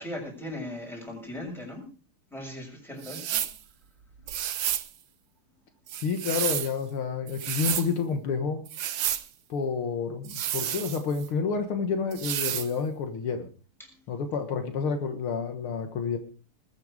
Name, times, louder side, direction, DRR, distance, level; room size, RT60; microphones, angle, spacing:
voice 1, 0.0-1.9 2.3-3.4 13.8-13.9, left 1 dB, ahead, 0 dB, 6.5 m, -38 dB
sound 1, 3.0-3.6 4.3-4.9 5.9-6.7 7.3-7.9 8.7-9.3 10.2-11.3 12.1-12.7, right 11 dB, 65° right, 1.5 m, -31 dB
voice 2, 5.9-8.7 9.5-13.5 14.1-16.2, left 5 dB, 75° left, 7 dB, 2.2 m, -29 dB
20.5 x 9.1 x 4.9 m, 0.38 s
omnidirectional pair, 2.4 m